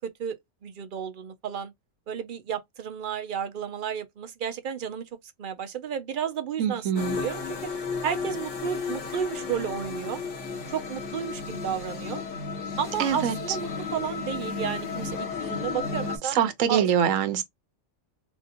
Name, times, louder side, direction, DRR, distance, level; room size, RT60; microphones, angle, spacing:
voice 1, 0.0-0.4 0.6-1.7 2.1-5.0 5.4-7.4 8.0-10.2 10.7-12.2 12.8-16.4 16.7-16.9, right 8 dB, 50° right, 0.7 m, -32 dB
voice 2, 6.6-7.2 13.0-13.3 16.3-17.4, right 8 dB, 85° right, 1.1 m, -24 dB
sound 1, 7.0-16.2, left 4 dB, 70° left, 1.6 m, -33 dB
3.5 x 2.6 x 2.5 m
omnidirectional pair, 1.3 m